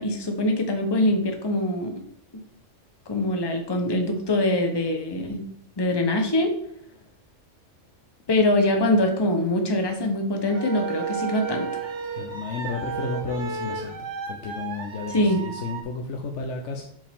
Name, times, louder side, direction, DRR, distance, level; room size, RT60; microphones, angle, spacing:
voice 1, 0.0-2.0 3.1-5.4 5.8-6.5 8.3-11.8 15.1-15.4, left 1 dB, 20° left, 4 dB, 0.9 m, -23 dB
sound 1, 10.4-15.8, right 6 dB, 70° right, 1.2 m, -33 dB
voice 2, 12.1-16.8, left 4 dB, 70° left, 3 dB, 1.1 m, -32 dB
7.5 x 5.0 x 3.6 m, 0.68 s
omnidirectional pair, 1.3 m